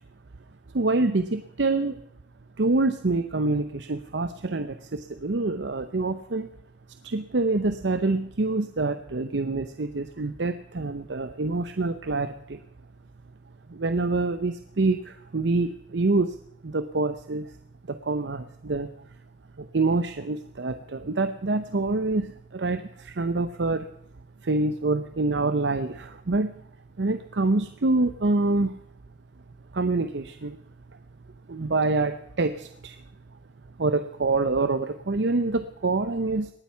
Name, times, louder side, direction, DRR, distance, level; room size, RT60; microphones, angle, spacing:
voice 1, 0.7-2.0 2.6-6.5 7.0-12.6 13.7-16.4 16.6-17.5 17.9-18.9 19.6-23.9 24.4-26.5 27.0-28.8 29.7-30.6 31.5-33.0 33.8-36.5, right 3 dB, 75° right, 10 dB, 0.7 m, -26 dB
19.0 x 13.0 x 5.7 m, 0.75 s
head